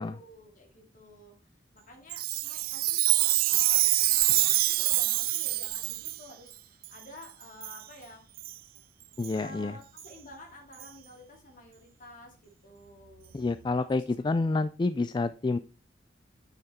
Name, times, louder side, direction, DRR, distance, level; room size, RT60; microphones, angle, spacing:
voice 1, 0.0-1.3 1.7-8.2 9.3-13.3 13.7-14.5, left 1 dB, 50° left, 2 dB, 2.8 m, -50 dB
Chime, 2.1-6.2 6.8-6.9 7.6-7.8 8.4-8.5 9.2-9.3 10.0-10.1 10.8-10.9, right 18 dB, 55° right, 0.3 m, -26 dB
voice 2, 9.2-9.8 13.3-15.6, left 3 dB, 25° left, 13 dB, 0.3 m, -28 dB
9.4 x 5.9 x 4.3 m, 0.36 s
head